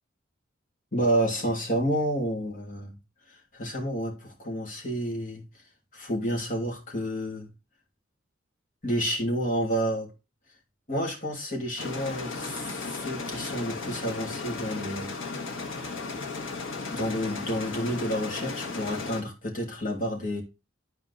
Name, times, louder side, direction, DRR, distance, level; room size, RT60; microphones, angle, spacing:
voice 1, 0.9-2.9 3.3-5.4 5.9-7.5 8.8-10.1 10.9-15.1 16.9-20.4, equal, 45° left, 2.9 m, -30 dB
sound 1, 11.8-19.2, left 3 dB, 90° left, 1.5 m, -35 dB
11.5 x 4.5 x 4.1 m
head